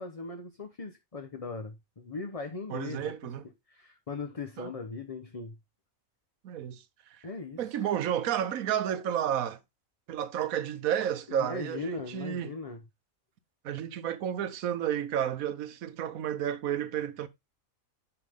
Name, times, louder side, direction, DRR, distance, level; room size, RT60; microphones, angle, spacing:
voice 1, 0.0-3.1 3.7-5.6 7.2-7.8 11.3-12.8, left 3 dB, 30° left, 0.9 m, -39 dB
voice 2, 2.7-3.4 4.6-4.7 6.4-6.8 7.1-7.3 7.6-9.6 10.1-12.5 13.6-17.3, right 10 dB, 75° right, 1.3 m, -31 dB
9.9 x 5.7 x 3.6 m
omnidirectional pair, 1.5 m